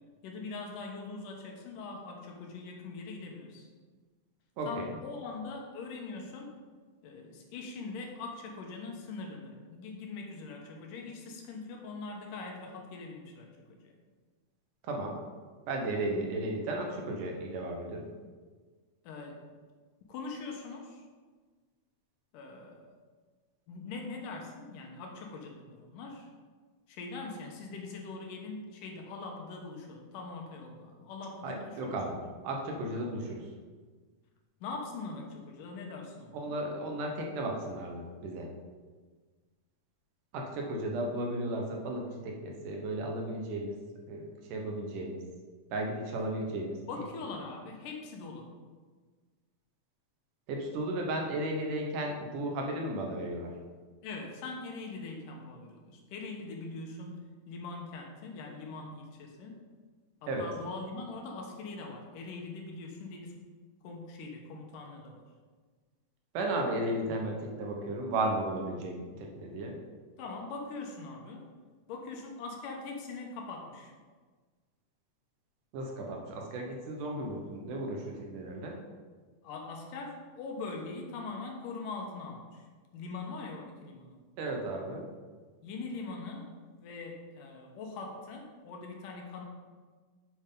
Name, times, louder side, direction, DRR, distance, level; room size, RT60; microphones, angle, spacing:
voice 1, 0.2-3.7 4.7-6.6 7.0-13.9 19.0-19.4 20.1-21.0 22.3-22.9 23.7-26.3 26.9-32.0 34.6-36.6 46.9-48.5 54.0-59.6 60.2-63.4 63.8-65.2 70.2-71.5 71.9-73.9 79.4-82.6 82.9-84.1 85.6-89.5, left 3 dB, 80° left, 2 dB, 2.7 m, -42 dB
voice 2, 4.6-5.0 14.8-15.2 15.7-18.1 31.4-32.2 32.4-33.5 36.3-38.5 40.3-43.8 44.1-45.2 45.7-46.8 50.5-53.5 60.3-60.5 66.3-69.8 75.7-78.8 84.4-85.1, right 1 dB, 75° right, 1 dB, 2.7 m, -34 dB
8.0 x 7.6 x 3.8 m, 1.4 s
omnidirectional pair, 3.7 m